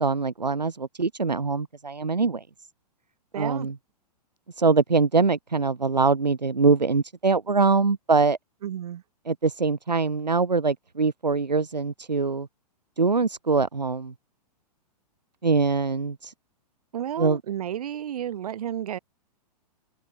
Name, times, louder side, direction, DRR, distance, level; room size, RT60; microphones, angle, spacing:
voice 1, 0.0-2.4 3.4-3.7 4.6-8.4 9.3-12.5 13.0-14.1 15.4-16.3 17.2-17.4, right 4 dB, 90° right, 3.4 m, -23 dB
voice 2, 3.3-3.7 8.6-9.0 16.9-19.0, right 10 dB, 65° right, 4.6 m, -32 dB
open air
figure-of-eight pair, 110°, 21 cm